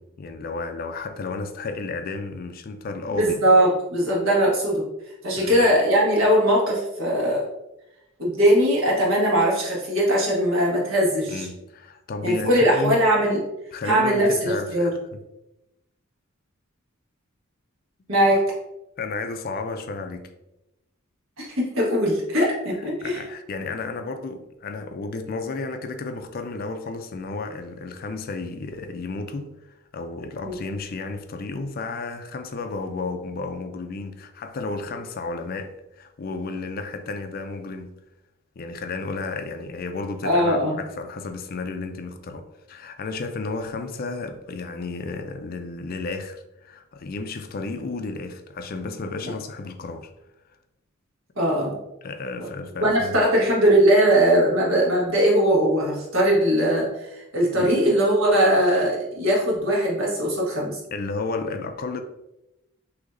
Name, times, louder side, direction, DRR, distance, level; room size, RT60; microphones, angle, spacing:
voice 1, 0.0-3.4 5.4-5.6 11.3-13.0 13.7-15.2 19.0-20.2 23.0-29.5 29.9-37.9 38.6-50.1 52.0-53.2 57.5-57.8 60.9-62.0, left 3 dB, 45° left, 0.4 m, -32 dB
voice 2, 3.1-4.8 5.2-7.4 8.2-11.5 12.2-13.4 13.8-14.9 18.1-18.4 21.4-23.2 30.4-30.6 40.2-40.8 51.4-51.8 52.8-56.9 57.2-60.8, right 1 dB, 75° right, 1.5 m, -20 dB
6.3 x 2.8 x 2.6 m
head